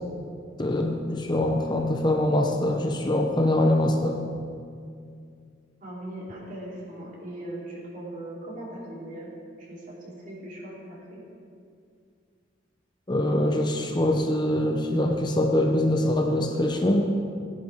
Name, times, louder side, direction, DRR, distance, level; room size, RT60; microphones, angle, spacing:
voice 1, 0.6-4.2 13.1-17.1, left 1 dB, 25° left, 2 dB, 0.8 m, -23 dB
voice 2, 5.8-9.3 9.6-11.2, right 1 dB, 45° right, -6 dB, 3.4 m, -39 dB
17.5 x 10.5 x 3.6 m, 2.3 s
head